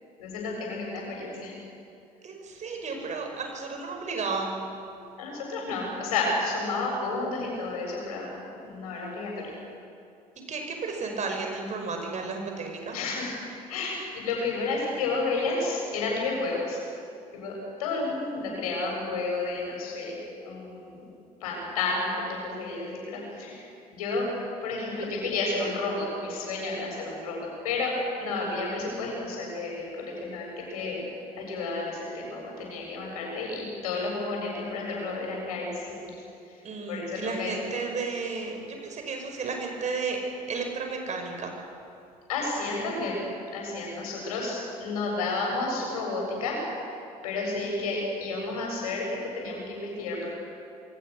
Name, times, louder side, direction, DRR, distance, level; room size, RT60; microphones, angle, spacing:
voice 1, 0.2-1.5 5.2-8.3 8.6-9.5 12.9-13.3 13.7-16.8 17.3-21.0 21.4-23.6 23.9-24.3 24.6-31.0 31.4-36.1 36.9-37.7 42.3-43.2 43.5-46.6 47.2-50.3, left 3 dB, 70° left, -1 dB, 7.6 m, -31 dB
voice 2, 2.2-4.6 10.5-13.0 36.6-40.2 40.5-41.5, right 4 dB, 40° right, 3 dB, 5.7 m, -33 dB
28.0 x 23.5 x 6.6 m, 2.6 s
figure-of-eight pair, 55°, 20 cm